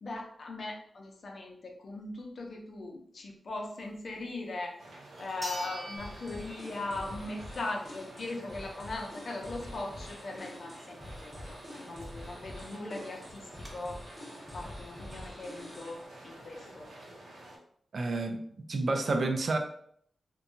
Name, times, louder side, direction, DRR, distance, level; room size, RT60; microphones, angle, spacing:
voice 1, 0.0-4.7 5.2-14.0 14.5-16.9, left 2 dB, 55° left, 1 dB, 0.5 m, -39 dB
sound 1, 4.6-4.7 5.4-7.2 7.6-7.7 12.3-12.4 12.6-12.7 13.2-13.7, right 1 dB, 40° right, 0.9 m, -44 dB
sound 2, 4.8-17.6, right 1 dB, 90° right, 0.7 m, -50 dB
sound 3, 6.0-16.0, left 1 dB, 20° left, 0.7 m, -47 dB
voice 2, 17.9-19.6, right 3 dB, 55° right, 5 dB, 0.3 m, -30 dB
2.7 x 2.2 x 2.6 m, 0.65 s
wide cardioid pair, 110°, 0 cm